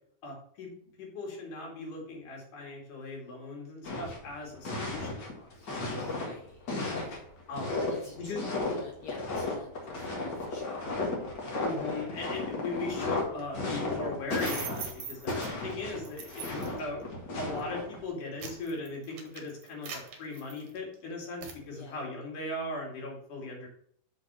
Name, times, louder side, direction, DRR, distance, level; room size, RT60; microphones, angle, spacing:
voice 1, 0.2-5.9 7.5-7.7 8.2-8.4 11.6-17.0 17.4-23.7, left 2 dB, 85° left, -1 dB, 3.9 m, -39 dB
sound 1, 3.8-6.3 6.7-15.0 15.3-18.0, left 2 dB, 40° left, 1.9 m, -34 dB
voice 2, 5.5-7.2 7.6-10.9 21.7-22.0, left 5 dB, 70° left, 2 dB, 1.7 m, -48 dB
sound 2, 14.3-15.5 16.0-16.8 17.4-17.6 18.1-20.9 21.4-21.6, right 6 dB, 65° right, 2.3 m, -42 dB
6.5 x 5.1 x 6.8 m, 0.64 s
omnidirectional pair, 3.5 m